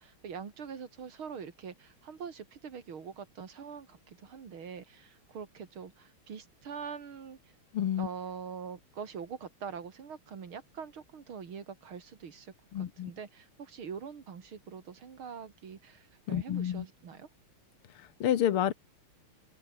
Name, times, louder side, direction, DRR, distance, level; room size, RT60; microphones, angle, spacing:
voice 1, 0.0-7.4 8.0-17.3, right 6 dB, 70° right, 3.0 m, -44 dB
voice 2, 7.7-8.1 12.7-13.1 16.3-16.9 17.9-18.7, left 10 dB, 85° left, 2.2 m, -29 dB
open air
omnidirectional pair, 2.4 m